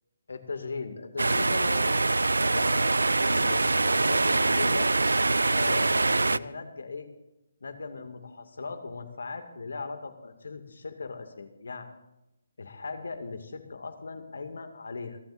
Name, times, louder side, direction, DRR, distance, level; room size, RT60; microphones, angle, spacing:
voice 1, 0.3-2.1 2.4-2.9 3.2-4.9 5.5-7.1 7.6-11.9 12.6-15.2, left 4 dB, 65° left, 7 dB, 2.4 m, -38 dB
sound 1, 1.2-6.4, right 3 dB, 80° right, 0.4 m, -24 dB
30.0 x 12.5 x 2.7 m, 0.95 s
figure-of-eight pair, 145°, 0 cm